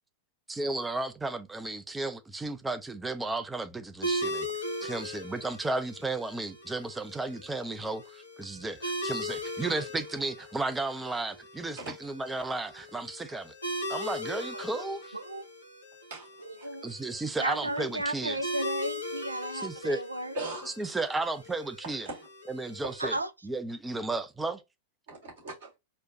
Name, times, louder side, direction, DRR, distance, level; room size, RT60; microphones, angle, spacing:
voice 1, 0.5-4.5 4.8-13.5 13.9-15.2 16.8-18.4 19.5-20.0 20.8-22.1 22.5-23.2 23.4-24.6, right 2 dB, 10° right, 0.5 m, -34 dB
sound 1, 4.0-23.2, equal, 85° left, 1.0 m, -39 dB
voice 2, 14.5-14.9 15.1-15.5 16.4-16.9 17.4-20.4 23.0-23.3, right 1 dB, 80° right, 0.4 m, -34 dB
voice 3, 16.1-16.7 20.3-20.7 22.1-22.3 25.1-25.8, right 2 dB, 60° right, 2.3 m, -40 dB
4.3 x 2.2 x 2.6 m
figure-of-eight pair, 90°, 0 cm